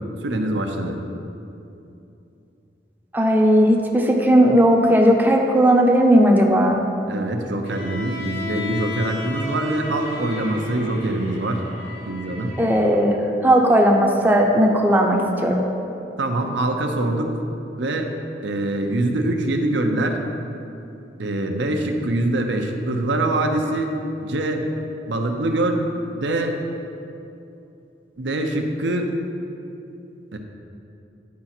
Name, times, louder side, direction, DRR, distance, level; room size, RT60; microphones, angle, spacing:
voice 1, 0.2-1.0 7.1-11.6 12.1-12.6 16.2-17.3 17.8-18.1 18.4-20.2 21.2-23.9 24.2-24.6 25.1-25.9 26.1-26.6 28.2-29.1 30.3-30.4, right 1 dB, 90° right, 4 dB, 0.7 m, -24 dB
voice 2, 3.1-6.8 12.6-15.6, equal, 10° right, 0 dB, 0.5 m, -16 dB
Bowed string instrument, 7.6-12.9, left 2 dB, 55° left, 1.4 m, -33 dB
9.5 x 4.8 x 4.3 m, 2.7 s
head